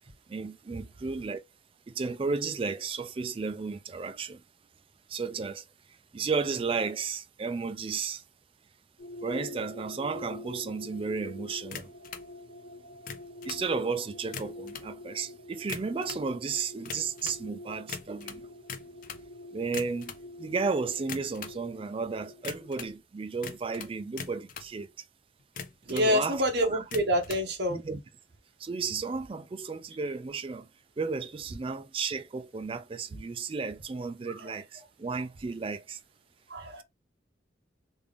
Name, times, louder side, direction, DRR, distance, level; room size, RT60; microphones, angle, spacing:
voice 1, 0.3-1.4 2.0-4.4 5.1-5.6 6.1-8.2 9.2-11.8 13.5-18.4 19.5-20.1 20.4-24.9 25.9-26.4 26.7-26.8 27.7-28.0 28.6-30.6 31.0-36.0, right 4 dB, 30° right, 0.3 m, -33 dB
sound 1, 9.0-22.9, left 1 dB, 70° left, 1.4 m, -46 dB
sound 2, 11.7-12.3 12.9-13.7 14.2-14.9 15.5-16.3 16.8-17.4 17.9-19.3 19.6-20.2 21.0-21.6 22.4-23.0 23.4-24.7 25.4-26.1 26.8-27.5, left 6 dB, 45° left, 0.5 m, -41 dB
voice 2, 25.9-27.8 34.3-34.6 36.5-36.8, equal, 60° right, 1.0 m, -27 dB
3.5 x 2.4 x 3.3 m
head